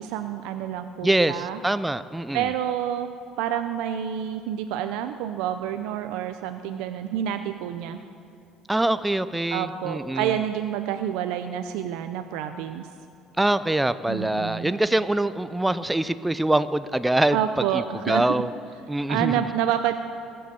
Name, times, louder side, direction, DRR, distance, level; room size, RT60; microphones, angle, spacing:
voice 1, 0.0-1.6 2.3-3.1 3.4-8.0 9.5-12.9 14.1-14.7 17.3-18.4 19.1-19.9, right 10 dB, 85° right, 8 dB, 0.6 m, -28 dB
voice 2, 1.0-2.5 8.7-10.3 13.4-17.4 17.7-18.5 18.9-19.4, right 1 dB, 5° right, 14 dB, 0.3 m, -24 dB
22.0 x 7.8 x 6.9 m, 2.6 s
cardioid pair, 150°, 0 cm